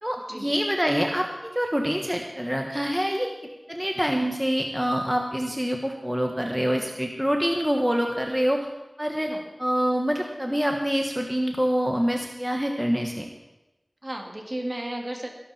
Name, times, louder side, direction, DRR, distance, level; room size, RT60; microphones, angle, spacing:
voice 1, 0.0-3.3 3.7-8.7 9.0-9.3 9.6-13.2, equal, 10° right, 2 dB, 1.5 m, -26 dB
voice 2, 14.0-15.3, right 1 dB, 40° right, 2 dB, 2.7 m, -33 dB
20.5 x 11.5 x 4.5 m, 1.0 s
wide cardioid pair, 45°, 0 cm